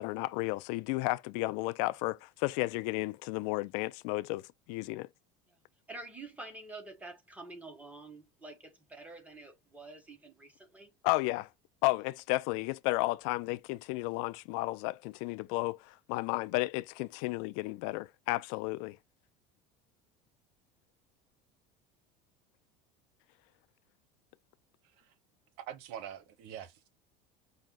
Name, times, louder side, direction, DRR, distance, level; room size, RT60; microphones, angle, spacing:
voice 1, 0.0-5.1 11.0-11.5 11.8-19.0, left 21 dB, 70° left, 0.4 m, -33 dB
voice 2, 5.9-10.9, right 2 dB, 10° right, 1.5 m, -48 dB
voice 3, 25.7-26.9, right 10 dB, 70° right, 0.9 m, -44 dB
5.5 x 2.2 x 3.7 m
supercardioid pair, 115°, 17 cm